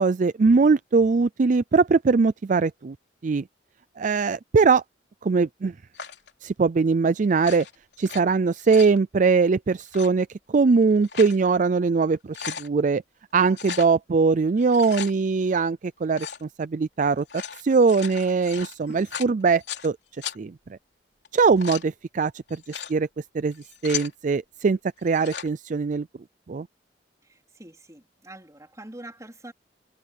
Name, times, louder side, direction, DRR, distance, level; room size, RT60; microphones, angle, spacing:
voice 1, 0.0-3.0 3.2-3.4 4.0-4.8 5.2-5.7 6.4-7.7 8.0-12.2 12.6-13.0 13.3-20.0 20.4-20.8 21.3-23.1 23.3-23.5 23.8-26.1 26.5-26.7, right 4 dB, 45° right, 0.4 m, -21 dB
sound 1, 5.9-6.3 7.3-8.2 8.5-9.0 9.8-10.1 10.8-11.4 11.8-11.9 12.2-12.7 13.5-13.9 14.6-15.1 16.1-16.4 17.2-19.9 20.2-20.4 21.2-21.9 22.5-22.9 23.5-24.1 25.0-25.5, left 8 dB, 70° left, 3.6 m, -36 dB
voice 2, 27.2-29.5, right 1 dB, 20° right, 4.0 m, -44 dB
head